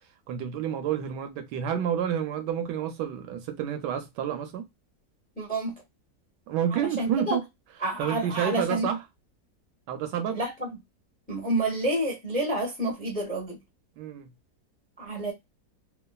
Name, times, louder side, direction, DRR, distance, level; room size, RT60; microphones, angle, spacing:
voice 1, 0.3-4.6 6.5-7.4 8.0-9.0 9.9-10.4 14.0-14.3, right 9 dB, 75° right, 1.1 m, -29 dB
voice 2, 5.4-5.7 6.7-7.4 7.8-8.9 10.3-10.7 11.3-13.6 15.0-15.3, right 1 dB, 10° left, 0.5 m, -29 dB
3.1 x 2.3 x 2.3 m
omnidirectional pair, 2.0 m